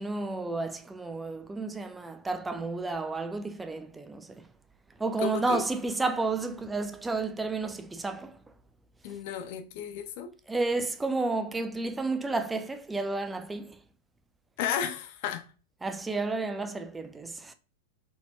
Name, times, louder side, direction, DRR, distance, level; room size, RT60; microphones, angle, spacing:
voice 1, 0.0-4.5 5.0-8.3 10.5-13.8 15.8-17.5, right 3 dB, 10° right, 0.4 m, -31 dB
voice 2, 5.2-5.6 9.0-10.3 14.6-15.5, left 9 dB, 50° left, 0.5 m, -33 dB
4.1 x 2.9 x 2.6 m
figure-of-eight pair, 90°, 0 cm